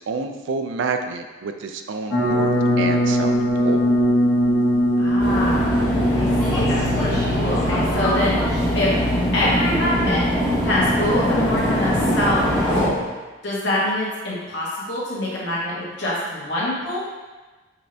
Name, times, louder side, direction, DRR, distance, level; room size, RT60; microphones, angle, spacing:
voice 1, 0.1-3.9, right 4 dB, 75° right, 6 dB, 0.4 m, -29 dB
sound 1, 2.1-13.1, equal, 85° left, 1.5 m, -23 dB
voice 2, 5.0-5.8 6.1-8.9 9.3-10.2 10.6-13.0 13.4-17.0, left 1 dB, 65° left, -7 dB, 1.4 m, -25 dB
sound 2, 5.2-12.9, equal, 10° left, 0.8 m, -22 dB
5.3 x 2.7 x 3.2 m, 1.2 s
head